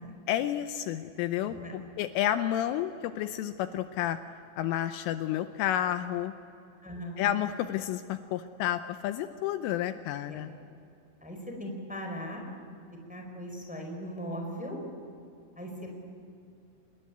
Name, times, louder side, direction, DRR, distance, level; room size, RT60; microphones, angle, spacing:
voice 1, 0.3-4.2 4.6-6.3 7.2-10.5, left 11 dB, 80° left, 9 dB, 3.1 m, -30 dB
voice 2, 6.8-7.2 10.3-10.4 11.2-12.4 13.1-14.8 15.6-16.0, equal, ahead, 2 dB, 3.7 m, -39 dB
26.5 x 20.5 x 9.3 m, 2.6 s
omnidirectional pair, 6.0 m